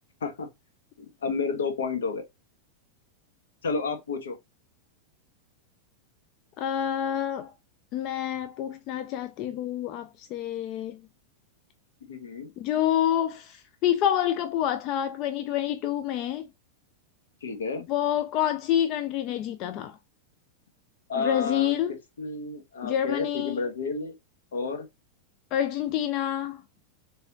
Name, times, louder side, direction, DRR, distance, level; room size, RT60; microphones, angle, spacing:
voice 1, 1.0-2.2 3.6-4.4 12.0-12.5 17.4-17.9 21.1-21.7 22.2-24.1 24.5-24.9, left 4 dB, 65° left, 1.1 m, -31 dB
voice 2, 6.6-7.5 7.9-11.0 12.6-16.5 17.9-20.0 21.2-21.9 22.8-23.6 25.5-26.6, left 11 dB, 40° left, 0.4 m, -27 dB
4.2 x 3.4 x 2.8 m
figure-of-eight pair, 90°, 0 cm